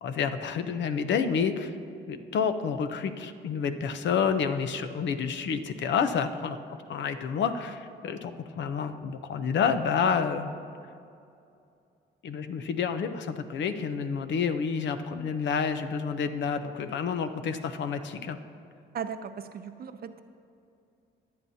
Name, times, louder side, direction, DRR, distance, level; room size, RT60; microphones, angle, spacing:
voice 1, 0.0-1.7 2.1-6.6 6.9-10.5 12.2-18.4, left 6 dB, 65° left, 9 dB, 0.7 m, -29 dB
voice 2, 18.9-20.2, right 7 dB, 50° right, 10 dB, 0.6 m, -37 dB
23.0 x 8.6 x 2.8 m, 2.5 s
cardioid pair, 90°, 20 cm